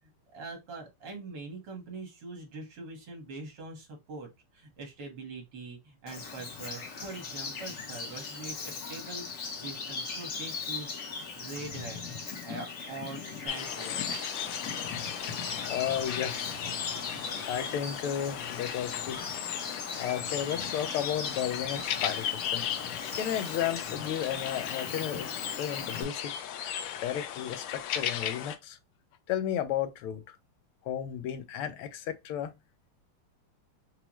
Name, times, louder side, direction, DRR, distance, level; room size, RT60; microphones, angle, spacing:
voice 1, 0.3-9.2 9.6-12.0 12.4-14.2, right 3 dB, 80° right, 2.5 m, -43 dB
Bird vocalization bird call bird song, 6.1-26.0, left 5 dB, 55° left, 1.0 m, -39 dB
sound 1, 13.5-28.6, left 9 dB, 75° left, 1.2 m, -36 dB
voice 2, 15.7-16.6 17.3-19.3 20.0-22.7 23.2-25.3 25.6-26.3 27.0-28.8 29.3-30.4 30.8-32.5, left 10 dB, 90° left, 1.6 m, -33 dB
5.8 x 2.1 x 3.0 m
omnidirectional pair, 2.4 m